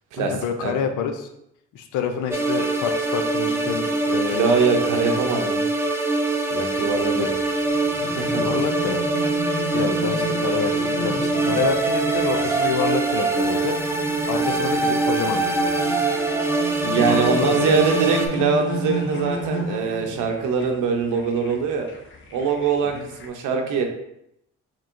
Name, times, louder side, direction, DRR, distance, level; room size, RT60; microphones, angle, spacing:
voice 1, 0.2-1.3 1.7-4.6 5.1-5.3 7.2-7.3 8.3-9.0 9.7-13.8 14.3-15.7 17.1-17.8 22.9-23.1, left 7 dB, 85° left, 7 dB, 0.6 m, -28 dB
sound 1, 2.3-18.3, right 3 dB, 10° right, 0.5 m, -23 dB
voice 2, 4.3-5.6 6.5-7.3 8.0-8.4 16.8-21.9 22.3-23.8, right 5 dB, 90° right, 3 dB, 0.7 m, -23 dB
sound 2, 6.7-23.3, equal, 40° left, 0.7 m, -33 dB
4.5 x 3.0 x 2.5 m, 0.78 s
cardioid pair, 90°, 30 cm